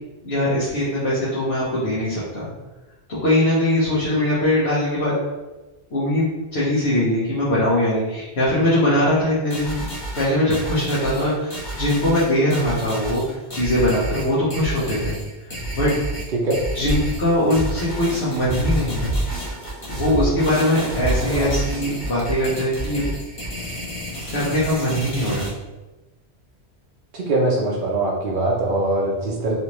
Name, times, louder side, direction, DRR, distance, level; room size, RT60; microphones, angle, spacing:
voice 1, 0.2-2.5 3.2-5.1 5.9-9.8 10.2-15.2 15.7-15.9 16.7-19.1 19.9-23.0 24.3-25.5, left 1 dB, 70° left, -10 dB, 1.2 m, -21 dB
sound 1, 9.5-25.5, right 1 dB, 30° left, 0.9 m, -32 dB
sound 2, 16.8-22.8, right 1 dB, 15° right, 0.7 m, -28 dB
voice 2, 27.1-29.5, right 2 dB, 55° right, -4 dB, 0.7 m, -22 dB
3.2 x 2.6 x 2.9 m, 1.1 s
omnidirectional pair, 1.1 m